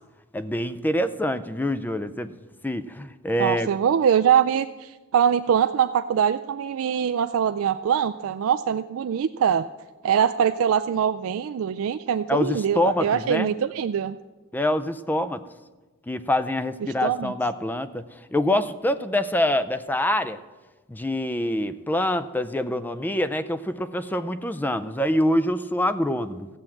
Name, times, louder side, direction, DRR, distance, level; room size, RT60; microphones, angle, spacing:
voice 1, 0.3-2.3 2.6-3.7 12.3-13.5 14.5-15.4 16.1-18.0 18.3-20.4 20.9-26.5, left 1 dB, 10° left, 13 dB, 0.4 m, -25 dB
voice 2, 3.4-9.7 10.0-14.2 16.8-17.3, right 8 dB, 65° right, 8 dB, 0.3 m, -23 dB
14.5 x 7.3 x 7.6 m, 1.2 s
head